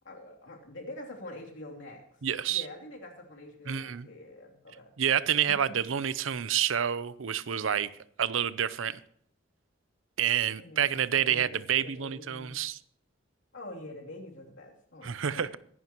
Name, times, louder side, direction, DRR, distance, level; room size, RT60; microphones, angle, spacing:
voice 1, 0.0-2.0 2.5-4.9 5.5-5.8 10.6-12.6 13.5-15.5, left 1 dB, 70° left, -1 dB, 3.0 m, -46 dB
voice 2, 2.2-2.6 3.7-4.1 5.0-7.9 8.2-9.0 10.2-12.8 15.0-15.6, right 9 dB, 90° right, 17 dB, 0.6 m, -28 dB
22.5 x 11.0 x 3.0 m, 0.64 s
head